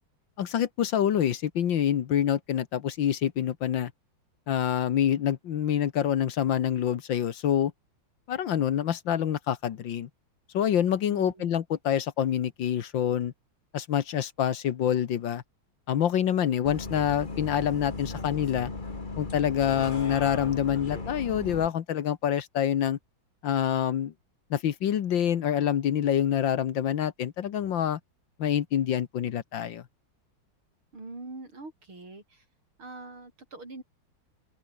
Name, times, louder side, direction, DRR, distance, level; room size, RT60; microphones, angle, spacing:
voice 1, 0.4-3.9 4.5-7.7 8.3-10.1 10.5-13.3 13.7-15.4 15.9-18.7 19.2-23.0 23.4-24.1 24.5-28.0 28.4-29.8, left 9 dB, 65° left, 1.8 m, -26 dB
voice 2, 11.1-11.5 30.9-32.4 32.8-33.8, right 2 dB, 85° right, 8.2 m, -43 dB
Bus, 16.6-21.7, left 3 dB, 25° left, 2.2 m, -36 dB
open air
omnidirectional pair, 2.3 m